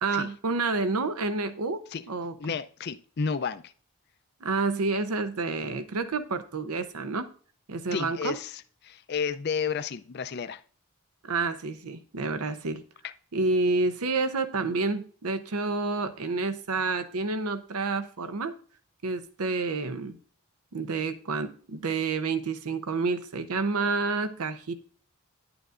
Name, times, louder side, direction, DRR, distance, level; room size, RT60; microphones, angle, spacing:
voice 1, 0.0-2.3 4.4-7.3 7.7-8.4 11.2-12.8 13.3-18.5 19.0-20.2 20.7-24.7, right 3 dB, 90° right, 0.7 m, -29 dB
voice 2, 2.4-3.6 7.9-10.6 13.0-13.1, left 6 dB, 45° left, 0.4 m, -32 dB
10.5 x 8.8 x 2.5 m
head